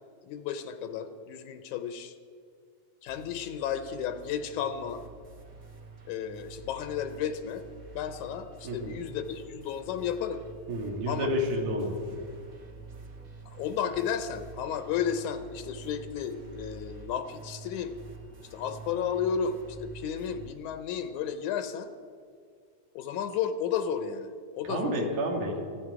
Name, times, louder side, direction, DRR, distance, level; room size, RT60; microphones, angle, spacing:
voice 1, 0.2-2.1 3.0-5.0 6.1-7.7 7.9-10.4 11.1-11.3 13.5-18.0 18.5-21.9 22.9-24.9, left 8 dB, 80° left, 9 dB, 2.2 m, -33 dB
sound 1, 3.1-20.5, right 4 dB, 40° right, 1.3 m, -48 dB
voice 2, 8.6-8.9 10.7-12.0 24.7-25.6, equal, 85° right, 1 dB, 3.7 m, -30 dB
26.0 x 9.5 x 4.8 m, 2.1 s
omnidirectional pair, 3.4 m